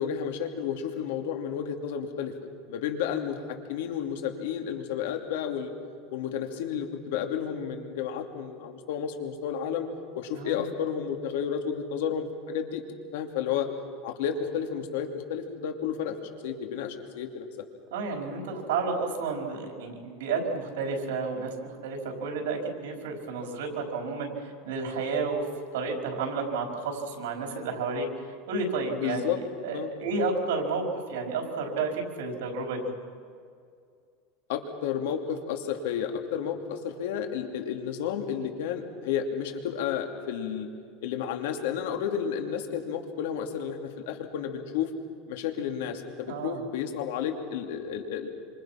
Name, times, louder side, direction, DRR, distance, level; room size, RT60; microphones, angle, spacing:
voice 1, 0.0-2.3 2.7-5.7 6.1-9.9 10.1-12.8 13.1-13.7 14.0-16.2 16.4-17.6 29.0-29.4 29.7-29.9 34.5-40.7 41.0-44.9 45.3-48.3, left 8 dB, 80° left, 4 dB, 2.8 m, -31 dB
voice 2, 10.3-10.7 17.9-25.4 25.7-32.9 46.3-46.6, right 4 dB, 85° right, 2 dB, 4.9 m, -31 dB
27.0 x 26.5 x 6.0 m, 2.2 s
supercardioid pair, 155°, 0 cm